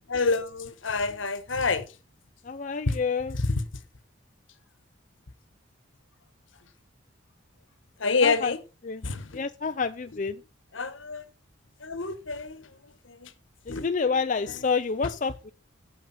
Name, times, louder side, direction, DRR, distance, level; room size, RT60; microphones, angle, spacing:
voice 1, 0.1-1.8 2.9-3.0 3.3-3.4 8.0-8.6 9.0-9.3 10.7-11.2 11.8-12.7 13.1-13.3 13.7-13.8, left 4 dB, 70° left, 1.2 m, -27 dB
voice 2, 2.4-3.4 8.2-8.5 8.8-9.1 9.3-10.4 13.7-15.5, left 5 dB, 40° left, 0.5 m, -28 dB
16.5 x 6.4 x 4.2 m
head